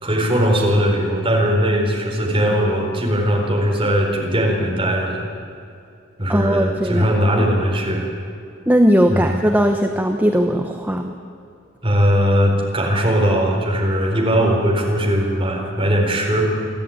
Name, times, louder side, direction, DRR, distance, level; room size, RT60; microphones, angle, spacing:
voice 1, 0.0-5.2 6.2-8.1 9.1-9.4 11.8-16.4, equal, 25° right, -1 dB, 4.4 m, -19 dB
voice 2, 6.3-7.1 8.7-11.1, equal, 10° right, 4 dB, 0.9 m, -18 dB
29.0 x 11.5 x 9.6 m, 2.5 s
head